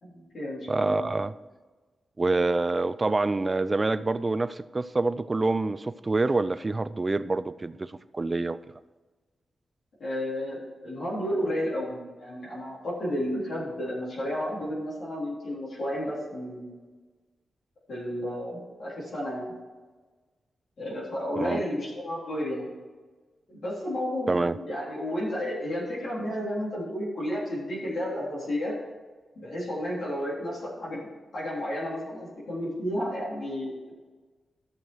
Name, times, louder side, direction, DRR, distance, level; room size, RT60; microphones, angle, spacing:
voice 1, 0.0-1.0 10.0-16.7 17.9-19.5 20.8-22.6 23.5-28.7 29.4-33.9, equal, 60° left, -7 dB, 3.8 m, -32 dB
voice 2, 0.7-1.3 2.2-8.6 21.4-21.6 24.3-24.6, right 3 dB, 25° right, 13 dB, 0.4 m, -26 dB
13.5 x 6.5 x 4.6 m, 1.3 s
wide cardioid pair, 145°, 0 cm